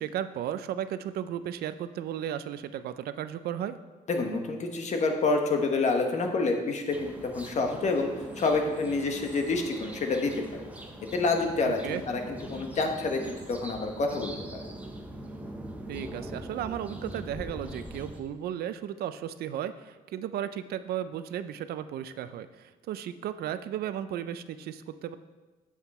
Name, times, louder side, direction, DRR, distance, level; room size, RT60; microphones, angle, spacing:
voice 1, 0.0-3.8 11.6-12.0 15.9-25.2, right 10 dB, 85° right, 12 dB, 0.5 m, -35 dB
voice 2, 4.1-8.1 8.4-10.7 11.1-14.6, left 3 dB, 45° left, 4 dB, 1.1 m, -28 dB
sound 1, 6.9-18.2, right 1 dB, 10° right, 0.8 m, -42 dB
8.0 x 7.2 x 4.2 m, 1.2 s
cardioid pair, 140°, 16 cm